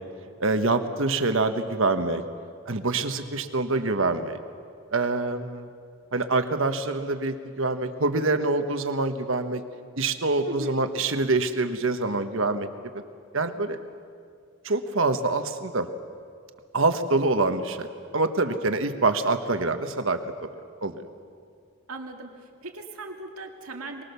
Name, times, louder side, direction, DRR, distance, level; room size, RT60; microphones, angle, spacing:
voice 1, 0.4-2.2 2.7-4.4 4.9-5.7 6.1-9.6 10.0-12.7 12.9-13.0 13.3-13.8 14.6-15.9 16.7-17.9 18.1-20.2 20.8-21.0, right 3 dB, 65° right, 8 dB, 1.3 m, -25 dB
voice 2, 10.4-10.8 21.9-24.0, right 2 dB, 90° right, 2 dB, 2.3 m, -38 dB
24.0 x 20.0 x 6.9 m, 2.3 s
head